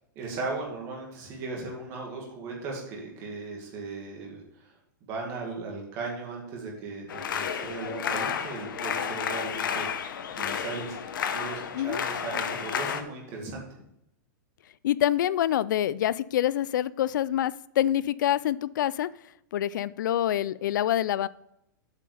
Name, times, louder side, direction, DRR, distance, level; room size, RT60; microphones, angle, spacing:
voice 1, 0.2-4.7 5.1-9.9 10.3-13.6, right 3 dB, 25° right, -1 dB, 2.1 m, -37 dB
sound 1, 7.1-13.0, left 7 dB, 85° left, 0.9 m, -31 dB
voice 2, 14.8-19.1 19.5-21.3, left 12 dB, 70° left, 19 dB, 0.4 m, -26 dB
8.2 x 5.7 x 4.9 m, 0.80 s
supercardioid pair, 175°, 11 cm